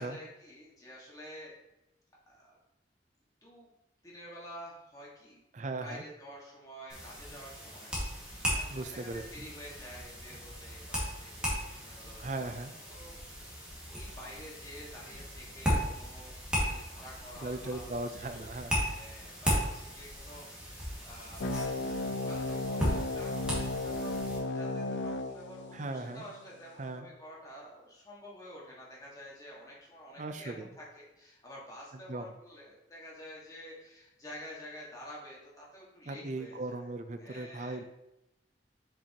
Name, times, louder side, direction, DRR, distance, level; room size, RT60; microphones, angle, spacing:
voice 1, 0.0-1.5 2.3-2.6 3.4-3.7 4.0-5.4 5.8-12.5 12.8-18.0 18.4-21.4 21.8-36.9 37.2-37.8, equal, 20° left, -5 dB, 1.7 m, -49 dB
voice 2, 5.5-6.0 8.7-9.5 12.2-12.7 17.4-18.7 25.7-26.2 26.8-27.1 30.2-30.7 32.1-32.3 36.1-37.8, right 2 dB, 40° right, 8 dB, 0.5 m, -38 dB
sound 1, 6.9-24.4, equal, 5° right, 1.9 m, -36 dB
sound 2, 21.4-26.4, left 2 dB, 85° left, 0.5 m, -35 dB
6.9 x 5.2 x 2.9 m, 0.91 s
head